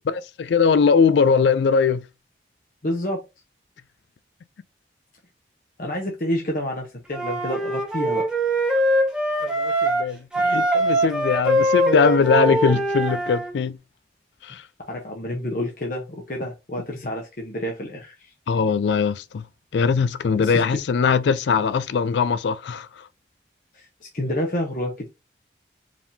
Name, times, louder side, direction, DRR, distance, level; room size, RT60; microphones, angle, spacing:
voice 1, 0.1-2.0 9.4-10.2 10.4-13.8 14.4-14.6 18.5-19.4 19.7-22.9, left 5 dB, 85° left, 0.4 m, -20 dB
voice 2, 2.8-3.2 5.8-8.3 10.4-10.5 14.9-18.3 20.4-20.8 23.7-25.1, left 1 dB, 50° left, 0.9 m, -29 dB
Wind instrument woodwind instrument, 7.1-10.0 10.3-13.5, right 1 dB, 5° right, 1.1 m, -22 dB
5.0 x 3.5 x 2.8 m
head